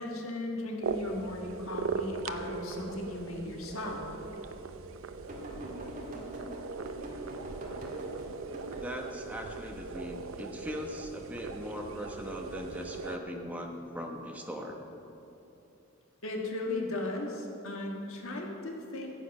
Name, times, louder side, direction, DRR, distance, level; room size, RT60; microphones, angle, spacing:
voice 1, 0.0-4.0 16.2-19.1, left 2 dB, 80° left, 0 dB, 1.6 m, -36 dB
sound 1, 0.8-13.2, right 4 dB, 70° right, 0.6 m, -39 dB
sound 2, 5.3-9.2 12.7-13.1 14.2-14.3, equal, 35° right, 1.8 m, -44 dB
voice 2, 8.8-14.8, equal, 5° right, 1 dB, 1.0 m, -40 dB
14.5 x 8.4 x 5.4 m, 2.9 s
head